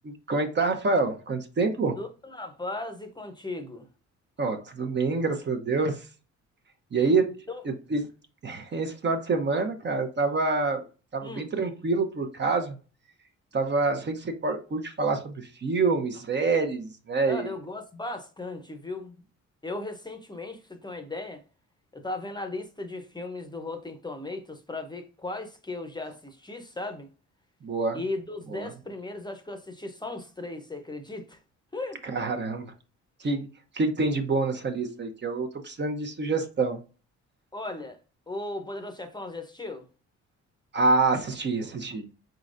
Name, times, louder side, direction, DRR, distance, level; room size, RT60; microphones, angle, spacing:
voice 1, 0.0-2.0 4.4-6.1 6.9-7.3 7.6-8.1 8.4-10.8 11.1-12.7 13.5-17.5 27.6-28.0 28.5-28.7 32.0-32.7 33.2-33.5 33.7-36.8 40.7-42.1, right 3 dB, 35° right, 0.8 m, -27 dB
voice 2, 2.0-3.9 7.0-7.1 7.5-7.6 11.2-11.5 17.3-19.2 19.6-21.4 21.9-27.1 27.9-31.4 31.7-32.0 37.5-38.0 38.3-39.9, left 2 dB, 15° left, 0.7 m, -37 dB
4.2 x 3.8 x 2.5 m
cardioid pair, 90°, 30 cm